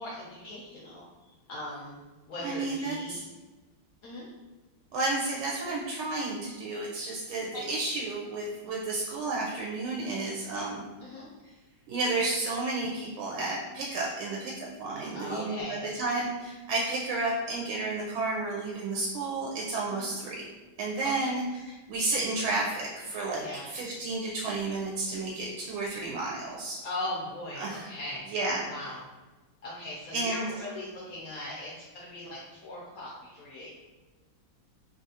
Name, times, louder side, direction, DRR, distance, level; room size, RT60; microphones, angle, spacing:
voice 1, 0.0-2.0 2.3-3.3 4.0-4.3 7.5-7.7 11.0-11.3 15.1-15.8 19.9-20.2 21.2-21.3 23.4-23.7 26.8-28.4 28.7-29.0 29.6-33.7, left 1 dB, 85° left, -5 dB, 0.7 m, -39 dB
voice 2, 2.4-3.2 4.9-10.8 11.9-20.5 20.8-26.8 27.6-27.9 28.3-28.6 30.1-30.4, right 2 dB, 85° right, -4 dB, 1.4 m, -32 dB
3.4 x 2.4 x 2.7 m, 1.2 s
omnidirectional pair, 2.2 m